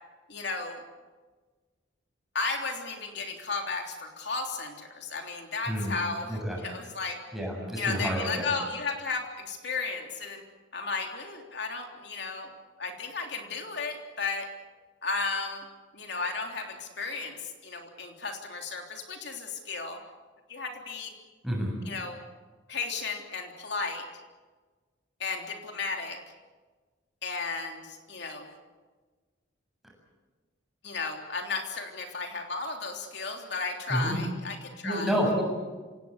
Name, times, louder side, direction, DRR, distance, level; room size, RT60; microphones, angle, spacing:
voice 1, 0.3-0.8 2.4-7.2 7.8-10.4 10.7-12.5 12.8-14.5 15.0-15.7 15.9-20.0 20.5-21.1 21.8-22.2 22.7-24.1 25.2-26.2 27.2-28.5 30.8-35.1, left 4 dB, 60° left, 3 dB, 3.4 m, -34 dB
voice 2, 6.3-6.6 7.3-8.5 21.4-21.8 33.9-34.2 34.8-35.4, equal, ahead, -1 dB, 7.4 m, -29 dB
27.0 x 18.0 x 8.2 m, 1.3 s
head